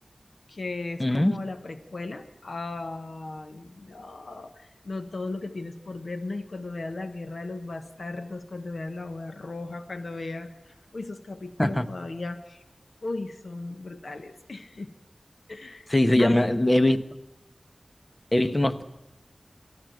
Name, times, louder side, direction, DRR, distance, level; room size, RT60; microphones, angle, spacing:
voice 1, 0.5-12.6 13.0-14.9 15.5-15.9 16.2-16.5, left 2 dB, 80° left, 1.2 m, -36 dB
voice 2, 1.0-1.3 11.6-11.9 15.9-17.0 18.3-18.8, left 1 dB, 30° left, 1.3 m, -21 dB
23.5 x 14.0 x 9.1 m
wide cardioid pair, 55°, 0 cm